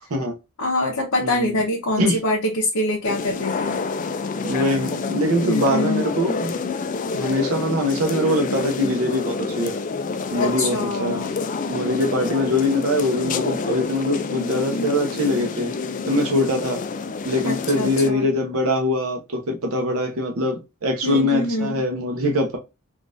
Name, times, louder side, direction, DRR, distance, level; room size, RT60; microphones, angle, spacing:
voice 1, 0.6-3.8 5.4-6.0 10.4-11.4 17.4-18.3 21.0-21.8, left 1 dB, 85° left, 0.8 m, -25 dB
sound 1, 3.0-18.1, left 4 dB, 35° left, 0.3 m, -28 dB
voice 2, 4.4-6.6 7.1-9.8 10.3-11.2 11.7-15.7 16.1-16.8 17.2-22.6, left 1 dB, 70° right, 0.8 m, -23 dB
3.7 x 2.5 x 2.5 m
head